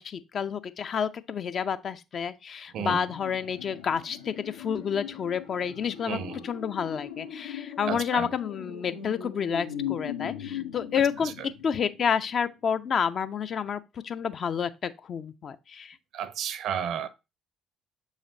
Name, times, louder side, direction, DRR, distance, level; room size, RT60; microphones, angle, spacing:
voice 1, 0.0-6.2 6.4-11.3 11.6-16.0, left 7 dB, 50° left, 0.6 m, -29 dB
sound 1, 3.0-12.2 12.5-12.6, left 9 dB, 85° left, 0.9 m, -39 dB
voice 2, 6.1-6.5 7.9-8.4 11.2-11.3 16.1-17.1, right 8 dB, 60° right, 0.7 m, -32 dB
7.1 x 4.9 x 2.7 m
hypercardioid pair, 50°, 0 cm